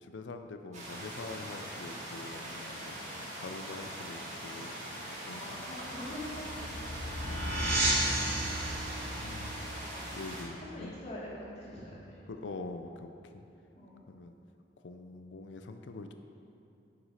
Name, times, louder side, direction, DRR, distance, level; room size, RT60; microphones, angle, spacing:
voice 1, 0.0-3.0 3.4-4.8 5.1-5.5 7.2-7.8 9.2-9.7 10.1-10.9 12.3-13.4 14.1-14.3 14.8-16.1, left 3 dB, 70° left, 6 dB, 0.5 m, -44 dB
sound 1, 0.7-10.4, right 1 dB, 40° right, 2.3 m, -42 dB
voice 2, 4.8-6.7 7.0-7.2 10.6-12.2 13.8-14.0, left 1 dB, 35° left, -7 dB, 2.5 m, -45 dB
sound 2, 5.8-11.2, right 1 dB, 55° right, 2.2 m, -34 dB
9.6 x 6.1 x 6.3 m, 2.7 s
head